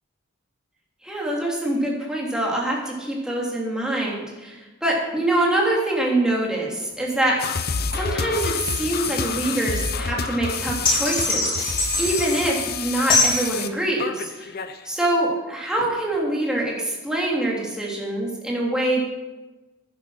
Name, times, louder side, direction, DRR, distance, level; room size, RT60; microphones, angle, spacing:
voice 1, 1.0-7.4 7.9-14.5 14.8-19.0, right 1 dB, 5° right, -4 dB, 3.1 m, -24 dB
sound 1, 7.4-14.8, left 6 dB, 50° left, 0.8 m, -28 dB
sound 2, 10.8-12.5 13.1-13.4, left 2 dB, 25° left, 3.4 m, -22 dB
11.0 x 10.5 x 5.8 m, 1.1 s
head